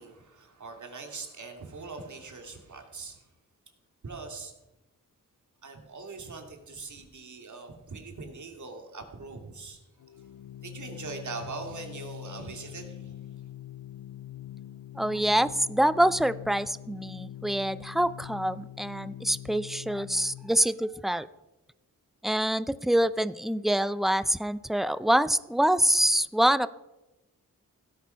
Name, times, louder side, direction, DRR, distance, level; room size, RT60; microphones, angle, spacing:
voice 1, 0.0-3.2 4.0-4.5 5.6-9.8 10.6-13.2, right 3 dB, 60° right, 3 dB, 2.7 m, -41 dB
Organ, 10.0-20.7, left 12 dB, 85° left, 0.6 m, -44 dB
voice 2, 15.0-21.3 22.2-26.7, right 1 dB, ahead, 16 dB, 0.5 m, -25 dB
16.5 x 9.3 x 5.8 m, 1.0 s
wide cardioid pair, 80°, 34 cm